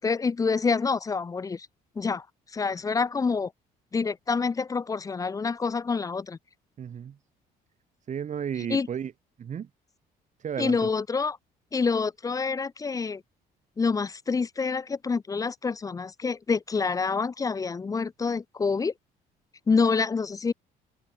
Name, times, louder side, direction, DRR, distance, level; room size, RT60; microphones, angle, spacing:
voice 1, 0.0-1.7 2.0-2.2 2.5-3.5 3.9-6.4 8.7-8.9 10.6-11.4 11.7-13.2 13.8-18.9 19.7-20.5, left 4 dB, 20° left, 0.5 m, -27 dB
voice 2, 6.8-7.2 8.1-9.1 9.4-9.7 10.4-10.9, right 8 dB, 45° right, 6.3 m, -33 dB
open air
cardioid pair, 110°, 17 cm